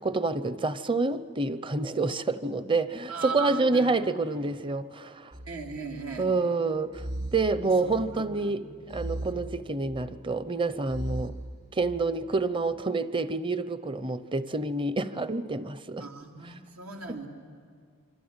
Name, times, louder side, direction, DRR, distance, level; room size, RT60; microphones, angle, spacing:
voice 1, 0.0-5.3 6.2-11.3 11.7-16.1 17.1-17.2, right 3 dB, 25° right, 0.7 m, -28 dB
voice 2, 3.1-4.0 5.5-6.3 7.6-8.5 16.0-17.3, right 4 dB, 85° right, 3.2 m, -38 dB
sound 1, 5.3-6.3 6.9-8.2 8.9-10.2 10.9-12.0, right 1 dB, 50° right, 2.9 m, -38 dB
26.0 x 24.5 x 8.9 m
head